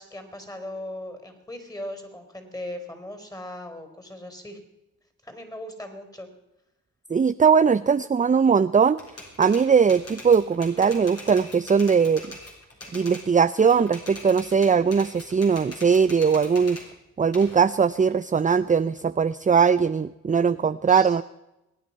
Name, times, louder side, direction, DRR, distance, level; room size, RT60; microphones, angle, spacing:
voice 1, 0.0-4.6 5.2-6.3 20.9-21.2, left 1 dB, 10° left, 7 dB, 4.3 m, -38 dB
voice 2, 7.1-9.0 9.4-12.3 12.9-16.8 17.2-21.2, right 6 dB, 25° right, 14 dB, 0.5 m, -20 dB
Typewriter, 9.0-13.3 13.6-16.9 17.3-19.0, left 2 dB, 45° left, 5.6 m, -42 dB
22.5 x 9.4 x 5.6 m, 0.94 s
supercardioid pair, 45°, 33 cm